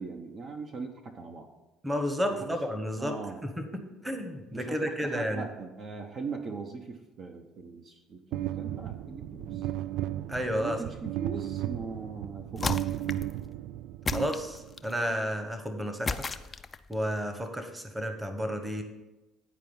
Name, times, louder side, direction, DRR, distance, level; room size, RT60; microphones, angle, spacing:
voice 1, 0.0-1.5 2.4-2.6 3.0-3.4 4.5-9.6 10.5-13.1, right 4 dB, 50° right, 5 dB, 0.9 m, -40 dB
voice 2, 1.8-3.2 3.6-5.4 10.3-10.8 14.1-16.3 16.9-18.8, equal, 10° right, 6 dB, 1.1 m, -32 dB
sound 1, 8.3-14.9, right 13 dB, 70° right, 0.3 m, -35 dB
sound 2, 12.6-13.4 14.1-15.0 16.1-16.9, left 4 dB, 25° left, 0.4 m, -34 dB
9.6 x 4.6 x 5.4 m, 1.0 s
supercardioid pair, 85°, 0 cm